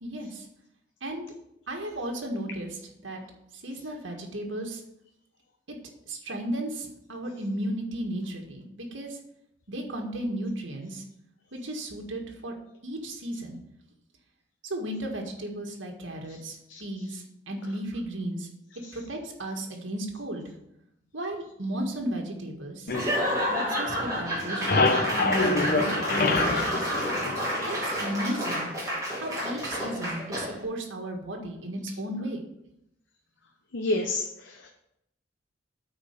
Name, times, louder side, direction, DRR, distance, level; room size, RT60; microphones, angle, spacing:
voice 1, 0.0-0.5 1.0-1.3 1.7-3.2 3.5-4.8 5.7-5.8 6.1-9.2 9.7-11.0 11.5-12.5 12.8-13.6 14.6-18.5 18.9-20.6 21.1-22.9 23.4-24.9 25.2-26.9 27.6-28.7 29.2-32.4, right 1 dB, 80° right, 1 dB, 1.8 m, -34 dB
sound 1, 22.9-24.0 24.3-28.0, left 3 dB, 50° left, 1.0 m, -26 dB
Laughter / Applause / Crowd, 22.9-30.6, equal, 20° right, 2.7 m, -30 dB
voice 2, 33.7-34.7, left 2 dB, 75° left, 3 dB, 0.9 m, -29 dB
8.8 x 4.5 x 6.7 m, 0.80 s
head